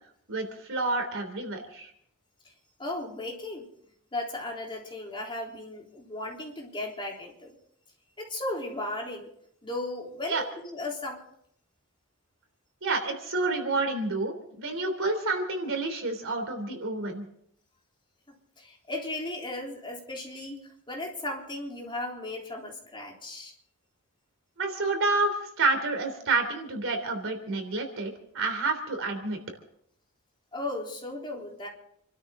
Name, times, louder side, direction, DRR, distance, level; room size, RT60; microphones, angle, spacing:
voice 1, 0.3-1.9 10.3-10.4 12.8-17.2 24.6-29.4, right 3 dB, 60° right, 5 dB, 3.5 m, -29 dB
voice 2, 2.8-3.7 4.1-7.6 8.2-9.3 9.6-11.2 18.3-23.5 30.5-31.7, left 2 dB, 25° left, -1 dB, 3.7 m, -36 dB
29.0 x 13.0 x 3.8 m, 0.70 s
head